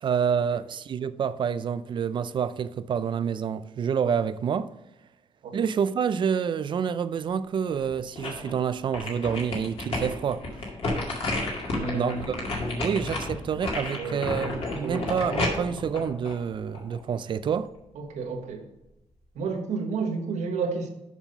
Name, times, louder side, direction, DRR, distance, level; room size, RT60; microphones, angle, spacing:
voice 1, 0.0-4.7 5.5-10.4 11.9-12.3 12.6-17.7, right 7 dB, 45° right, 0.4 m, -28 dB
sound 1, 7.7-8.5 8.9-17.0 17.4-17.5, left 2 dB, 55° left, 2.1 m, -31 dB
voice 2, 11.7-13.0 14.0-14.2 14.8-15.1 17.9-18.7 19.3-20.9, right 4 dB, 85° right, 1.4 m, -31 dB
7.2 x 5.5 x 5.4 m
cardioid pair, 145°, 12 cm